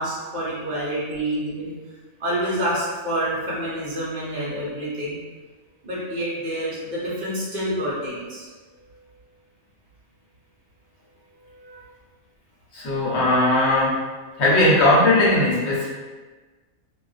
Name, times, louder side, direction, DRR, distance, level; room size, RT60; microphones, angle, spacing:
voice 1, 0.0-1.7 2.2-5.2 5.8-8.5, right 1 dB, 45° right, -8 dB, 0.8 m, -27 dB
voice 2, 12.7-13.9 14.4-15.9, left 1 dB, 70° left, -6 dB, 1.1 m, -18 dB
2.5 x 2.4 x 2.3 m, 1.3 s
omnidirectional pair, 1.2 m